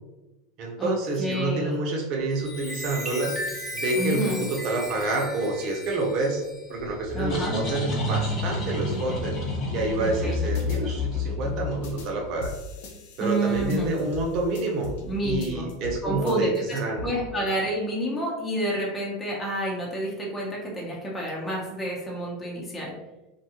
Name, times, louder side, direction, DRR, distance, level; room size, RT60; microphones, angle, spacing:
voice 1, 0.6-3.4 3.7-6.4 6.7-9.4 9.7-12.5 13.2-15.0 15.2-17.1, right 2 dB, 50° right, 1 dB, 0.7 m, -28 dB
voice 2, 1.2-1.8 3.9-4.5 7.1-7.6 10.0-10.4 13.2-13.9 15.0-15.7 16.0-22.9, right 1 dB, 20° left, -3 dB, 0.8 m, -29 dB
Chime, 2.2-8.2 8.7-9.0, left 1 dB, 10° right, 0.8 m, -37 dB
sound 1, 6.8-12.3, left 2 dB, 40° left, 1.0 m, -29 dB
sound 2, 10.6-10.8 11.8-12.1 12.4-15.0 15.3-16.0 16.3-17.1, left 4 dB, 70° left, 0.5 m, -38 dB
2.6 x 2.3 x 2.8 m, 1.0 s
hypercardioid pair, 90°, 0 cm